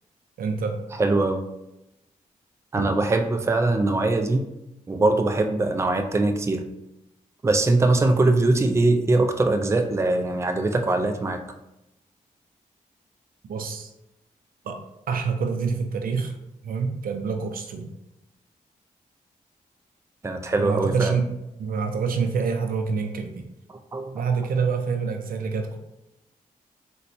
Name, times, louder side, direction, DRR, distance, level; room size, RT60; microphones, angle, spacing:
voice 1, 0.4-0.7 2.8-2.9 13.5-13.9 14.6-14.8 15.1-16.3 16.6-17.9 20.6-21.2 21.6-23.5 24.1-25.8, right 5 dB, 75° right, 5 dB, 0.5 m, -26 dB
voice 2, 1.0-1.4 2.7-4.5 4.9-6.7 7.4-11.4 20.2-21.2 23.9-24.2, right 2 dB, 20° right, 6 dB, 0.4 m, -22 dB
3.9 x 2.2 x 2.6 m, 0.90 s
cardioid pair, 55°, 15 cm